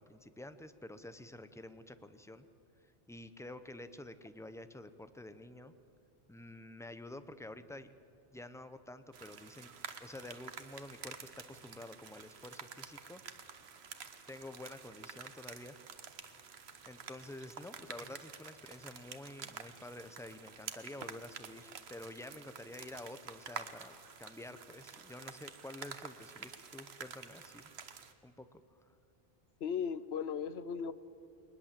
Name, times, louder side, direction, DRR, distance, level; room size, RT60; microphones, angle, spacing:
voice 1, 0.0-2.5 2.8-5.7 6.3-7.9 8.3-9.7 10.0-13.2 14.3-15.8 16.9-28.6, left 1 dB, 5° left, 11 dB, 0.6 m, -49 dB
sound 1, 9.1-28.1, right 6 dB, 85° right, 1.3 m, -49 dB
voice 2, 29.6-30.9, left 7 dB, 85° left, 15 dB, 1.0 m, -36 dB
21.0 x 20.0 x 7.5 m, 2.8 s
omnidirectional pair, 1.0 m